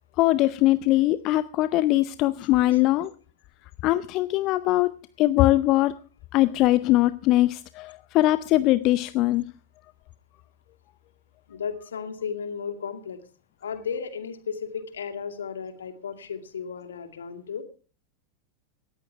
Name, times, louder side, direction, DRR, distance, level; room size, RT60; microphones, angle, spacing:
voice 1, 0.2-3.1 3.8-4.9 5.2-6.0 6.3-9.4, left 16 dB, 40° left, 15 dB, 0.6 m, -21 dB
voice 2, 11.5-13.2 13.6-17.6, left 6 dB, 65° left, 8 dB, 2.2 m, -34 dB
18.0 x 14.0 x 3.4 m, 0.37 s
figure-of-eight pair, 90°, 0 cm